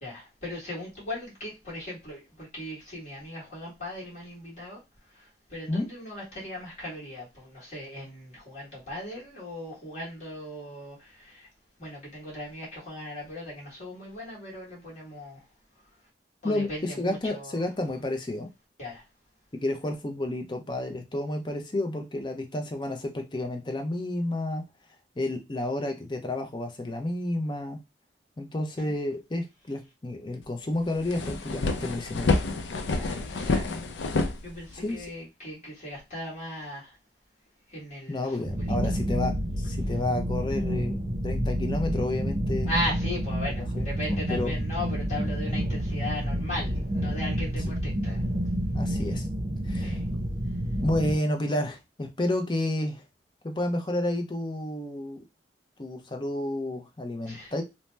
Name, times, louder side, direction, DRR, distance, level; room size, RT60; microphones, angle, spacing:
voice 1, 0.0-4.8 5.1-11.5 11.8-15.4 16.4-17.7 18.8-19.0 28.8-28.9 32.9-33.7 34.4-37.0 37.7-38.9 42.6-48.2 49.8-50.0 57.3-57.5, left 1 dB, 45° left, 1.4 m, -38 dB
voice 2, 16.4-18.5 19.5-24.6 25.2-27.8 28.4-32.4 34.8-35.1 38.1-41.0 41.2-42.7 43.5-44.5 48.7-49.3 49.7-50.0 50.8-53.0 53.4-55.2 55.8-57.6, left 1 dB, 25° left, 0.5 m, -31 dB
sound 1, 30.4-30.5 30.8-35.1, left 3 dB, 80° left, 0.5 m, -28 dB
sound 2, 38.4-51.1, equal, 35° right, 0.5 m, -29 dB
2.7 x 2.1 x 3.2 m
head